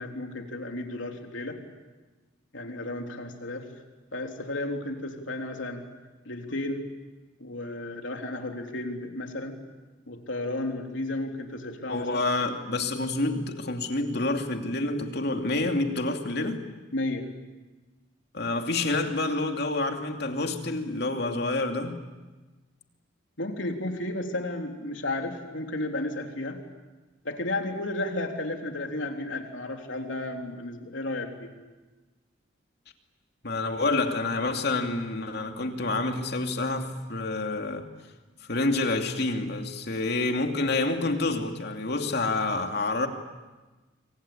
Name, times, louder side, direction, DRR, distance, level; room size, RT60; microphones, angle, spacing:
voice 1, 0.0-1.6 2.5-3.7 4.1-5.8 6.3-6.9 7.4-9.6 10.1-12.2 16.9-17.3 23.4-26.6 27.2-31.5, left 2 dB, 75° left, 3 dB, 3.5 m, -33 dB
voice 2, 11.9-16.7 18.3-22.0 33.4-37.9 38.4-43.1, left 2 dB, 55° left, 4 dB, 2.7 m, -28 dB
27.5 x 24.5 x 8.7 m, 1.2 s
head